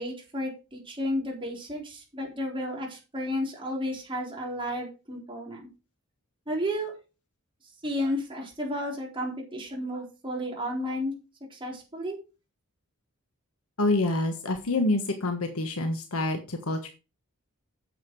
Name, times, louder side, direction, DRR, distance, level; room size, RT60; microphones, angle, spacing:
voice 1, 0.0-5.7 6.5-6.9 7.8-11.1 11.5-12.2, equal, 25° right, -2 dB, 4.0 m, -32 dB
voice 2, 13.8-16.9, left 2 dB, 70° left, 6 dB, 1.3 m, -27 dB
9.2 x 7.4 x 4.7 m, 0.31 s
head